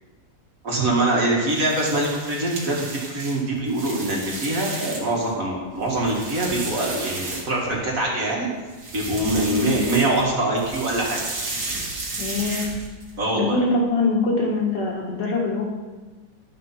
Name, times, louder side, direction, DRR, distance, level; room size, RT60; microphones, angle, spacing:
voice 1, 0.6-8.5 8.9-11.2 13.2-13.6, right 2 dB, 50° right, -3 dB, 2.4 m, -24 dB
sound 1, 1.4-5.2 5.7-7.9 8.7-10.3 10.6-13.1, right 3 dB, 70° right, 2.3 m, -33 dB
voice 2, 9.5-9.8 12.2-12.7 13.4-15.8, left 3 dB, 85° left, -1 dB, 2.4 m, -23 dB
12.0 x 5.5 x 5.7 m, 1.3 s
omnidirectional pair, 1.9 m